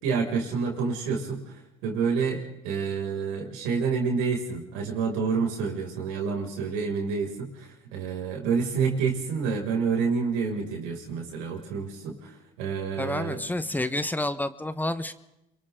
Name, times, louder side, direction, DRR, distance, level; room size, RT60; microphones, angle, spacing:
voice 1, 0.0-1.4 1.8-13.4, right 5 dB, 85° right, 1 dB, 6.3 m, -28 dB
voice 2, 13.0-15.1, left 1 dB, 10° left, 11 dB, 1.4 m, -29 dB
29.0 x 23.5 x 3.9 m, 0.87 s
supercardioid pair, 80°, 17 cm